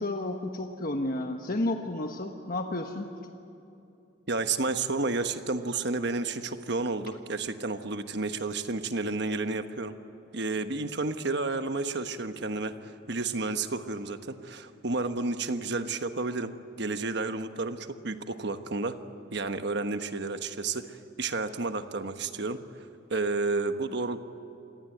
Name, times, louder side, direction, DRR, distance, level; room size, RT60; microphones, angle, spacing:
voice 1, 0.0-3.1, left 2 dB, 45° left, 4 dB, 1.3 m, -31 dB
voice 2, 4.3-10.0 10.3-19.0 19.3-24.2, right 3 dB, 60° right, 9 dB, 1.2 m, -31 dB
27.5 x 19.5 x 9.2 m, 2.8 s
head